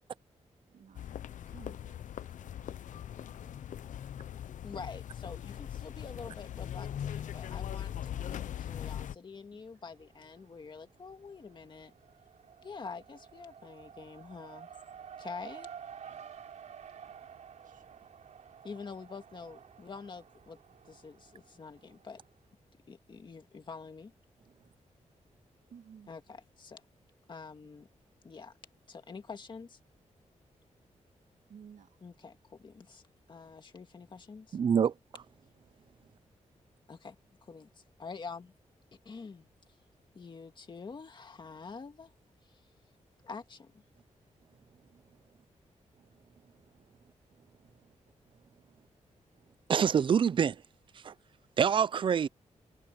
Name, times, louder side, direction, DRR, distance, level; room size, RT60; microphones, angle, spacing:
voice 1, 0.7-1.1 1.5-3.0 9.5-9.9 16.0-16.2 17.1-17.2 17.6-18.1 25.7-26.1 31.5-32.0, right 7 dB, 90° right, 2.2 m, -56 dB
sound 1, 0.9-9.1, left 10 dB, 80° left, 0.6 m, -40 dB
voice 2, 4.6-11.9 12.6-14.7 15.2-15.7 18.6-20.6 20.8-22.2 22.9-24.1 26.1-26.8 27.3-27.9 28.2-28.5 28.9-29.8 32.0-33.0 33.3-34.6 36.9-37.2 37.4-38.5 39.1-39.5 40.1-42.1 42.4-42.6 43.2-43.8, left 5 dB, 40° left, 2.0 m, -46 dB
Race car auto racing, 9.9-10.6 10.9-22.3, right 8 dB, 70° right, 3.8 m, -51 dB
voice 3, 34.5-34.9 49.7-50.6 51.0-51.1 51.6-52.3, right 7 dB, 40° right, 0.4 m, -25 dB
wide cardioid pair, 150°, 13 cm